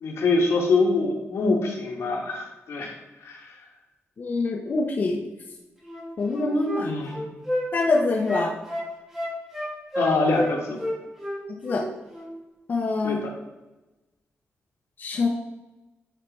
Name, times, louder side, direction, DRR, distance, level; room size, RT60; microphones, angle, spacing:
voice 1, 0.0-2.9 3.2-3.5 6.8-7.2 10.0-10.8 13.0-13.3, left 3 dB, 80° left, 0 dB, 1.8 m, -24 dB
voice 2, 4.2-5.2 6.2-6.9 7.7-8.6 11.5-11.8 12.7-13.2 15.0-15.3, left 3 dB, 45° left, -1 dB, 1.0 m, -25 dB
Wind instrument woodwind instrument, 5.8-10.5 10.8-11.9 12.1-12.3, equal, 10° right, 2.5 m, -30 dB
10.0 x 4.2 x 4.7 m, 1.1 s
wide cardioid pair, 165°, 5 cm